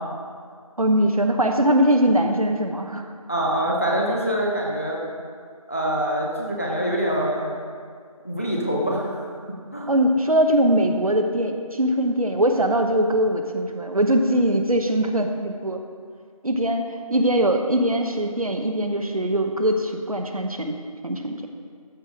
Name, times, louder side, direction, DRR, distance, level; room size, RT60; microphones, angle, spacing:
voice 1, 0.8-3.1 9.9-15.8 16.4-16.8 17.1-20.7 21.0-21.5, right 1 dB, 70° right, 4 dB, 1.0 m, -21 dB
voice 2, 3.3-5.0 5.7-7.5 8.2-9.3 9.7-9.9, equal, 25° left, -2 dB, 0.6 m, -25 dB
13.5 x 4.6 x 5.0 m, 2.1 s
figure-of-eight pair, 170°, 19 cm